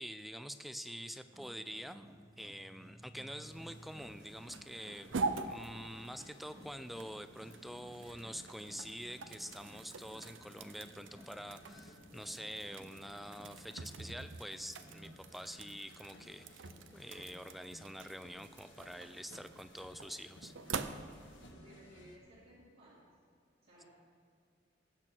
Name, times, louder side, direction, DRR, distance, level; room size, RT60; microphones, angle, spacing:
voice 1, 0.0-2.1 2.4-5.1 5.4-20.5, equal, ahead, 11 dB, 0.4 m, -46 dB
Wild animals, 1.2-15.5, equal, 15° right, 0.8 m, -58 dB
sound 1, 3.3-22.2, left 1 dB, 80° left, 1.6 m, -59 dB
sound 2, 3.5-21.5, right 4 dB, 90° right, 0.6 m, -45 dB
voice 2, 21.4-23.0 23.6-23.9, equal, 60° right, -9 dB, 2.9 m, -59 dB
18.5 x 8.2 x 4.5 m, 2.3 s
head